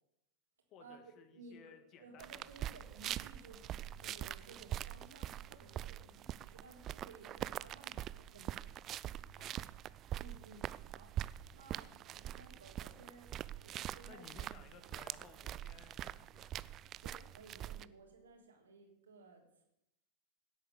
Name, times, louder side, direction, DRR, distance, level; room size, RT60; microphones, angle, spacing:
voice 1, 0.7-2.5 9.4-9.7 14.1-16.6, left 6 dB, 35° left, 9 dB, 1.9 m, -59 dB
voice 2, 1.3-8.7 10.2-11.1 11.5-13.3 13.6-14.3 16.9-19.6, right 3 dB, 70° right, 1 dB, 3.6 m, -57 dB
sound 1, 2.2-17.8, right 12 dB, 35° right, 0.4 m, -44 dB
16.5 x 8.5 x 7.0 m, 0.81 s
figure-of-eight pair, 90°, 0 cm